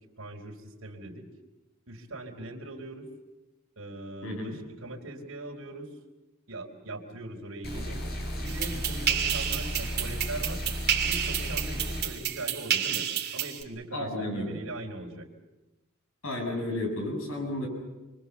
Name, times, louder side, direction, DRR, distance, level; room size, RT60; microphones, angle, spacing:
voice 1, 0.2-1.3 1.9-3.1 3.8-5.9 6.5-8.1 8.4-10.6 11.0-13.1 13.3-15.3, right 2 dB, 70° right, 2 dB, 4.1 m, -40 dB
sound 1, 7.6-12.0, equal, 45° left, 6.2 m, -34 dB
sound 2, 8.5-13.6, right 9 dB, 50° right, 3.0 m, -30 dB
voice 2, 13.9-14.6 16.2-17.7, left 1 dB, 75° left, 2 dB, 7.3 m, -32 dB
28.5 x 24.0 x 7.1 m, 1.1 s
head